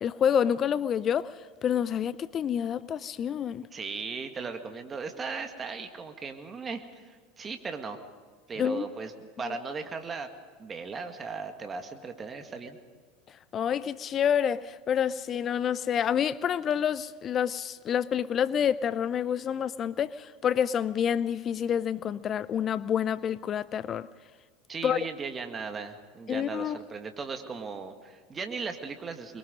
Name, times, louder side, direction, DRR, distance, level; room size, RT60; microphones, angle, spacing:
voice 1, 0.0-3.6 8.6-8.8 13.5-24.1 24.8-25.0 26.3-26.8, left 8 dB, 35° left, 0.5 m, -28 dB
voice 2, 3.7-8.0 8.5-10.3 10.6-12.8 24.7-29.4, right 4 dB, 25° right, 1.9 m, -37 dB
24.0 x 22.0 x 5.2 m
hypercardioid pair, 80°, 0 cm